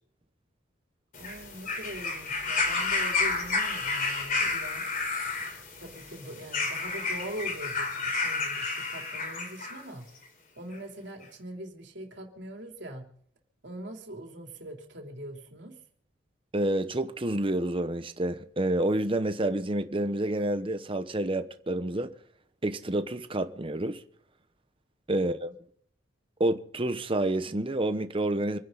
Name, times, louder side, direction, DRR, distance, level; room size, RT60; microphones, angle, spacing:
sound 1, 1.1-9.8 10.7-10.8, left 3 dB, 45° left, 3.9 m, -31 dB
voice 1, 1.2-4.9 5.8-10.0 10.6-13.0 13.6-15.8 25.1-25.5, right 1 dB, 60° right, 3.5 m, -42 dB
voice 2, 16.5-22.1 22.6-24.0 25.1-25.5 26.4-28.6, right 1 dB, 25° right, 1.0 m, -28 dB
27.0 x 10.5 x 4.0 m
head